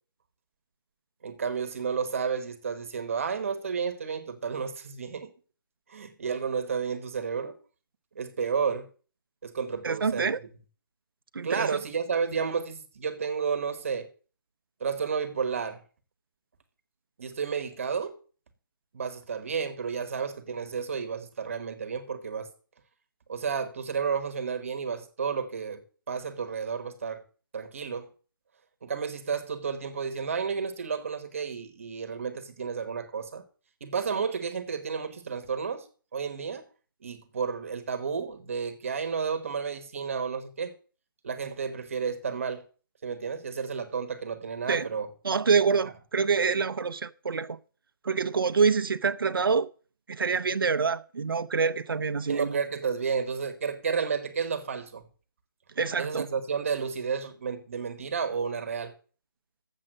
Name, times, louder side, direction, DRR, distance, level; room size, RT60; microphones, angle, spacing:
voice 1, 1.2-5.3 5.9-7.6 8.1-8.9 9.4-10.3 11.4-14.1 14.8-15.8 17.2-18.2 18.9-22.5 23.3-25.8 26.1-27.2 27.5-28.1 28.8-33.4 33.8-35.8 36.1-36.6 37.0-40.7 41.2-42.6 43.0-45.1 52.3-55.0 56.0-58.9, right 6 dB, 40° right, 1.2 m, -31 dB
voice 2, 9.8-10.4 11.3-11.8 44.7-44.9 45.2-47.6 48.0-49.7 50.1-52.6 55.8-56.3, right 5 dB, 85° right, 0.7 m, -26 dB
7.6 x 7.4 x 7.6 m
hypercardioid pair, 170°, 12 cm